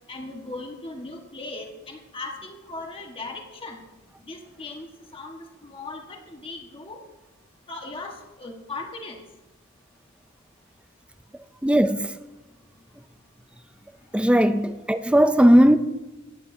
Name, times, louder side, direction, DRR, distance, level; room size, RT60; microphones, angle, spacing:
voice 1, 0.1-3.8 4.2-4.9 5.1-7.0 7.7-9.2, left 3 dB, 25° left, 1.4 m, -38 dB
voice 2, 11.6-12.1 14.1-15.8, equal, 5° right, 0.4 m, -17 dB
16.0 x 10.0 x 2.7 m
head